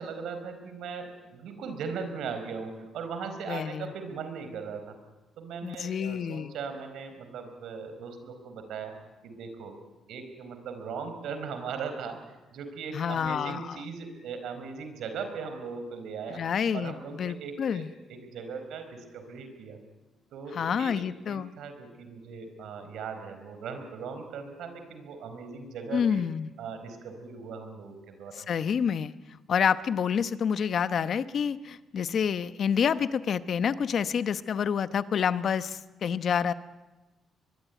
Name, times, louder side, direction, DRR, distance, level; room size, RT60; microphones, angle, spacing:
voice 1, 0.0-5.0 5.4-9.0 9.2-9.7 10.1-16.4 16.7-19.8 20.3-26.2 26.6-28.5, right 5 dB, 80° right, 8 dB, 4.5 m, -39 dB
voice 2, 3.5-3.9 5.6-6.5 12.9-13.8 16.3-17.9 20.5-21.5 25.9-26.5 28.3-29.1 29.5-36.5, left 7 dB, 60° left, 13 dB, 0.9 m, -28 dB
22.5 x 22.5 x 9.3 m, 1.2 s
cardioid pair, 90°, 0 cm